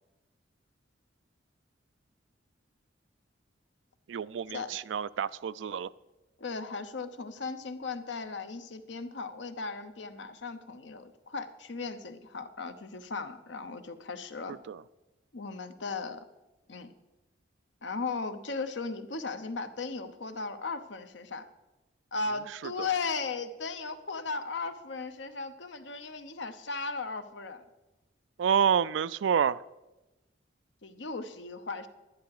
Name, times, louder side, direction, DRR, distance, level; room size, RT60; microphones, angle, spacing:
voice 1, 4.1-5.9 14.7-14.8 22.8-22.9 28.4-29.6, right 7 dB, 75° right, 0.4 m, -28 dB
voice 2, 6.4-14.5 15.3-16.2 16.7-16.9 17.8-21.5 22.1-27.6 30.8-31.9, left 4 dB, 70° left, 0.9 m, -37 dB
11.5 x 10.5 x 4.8 m
head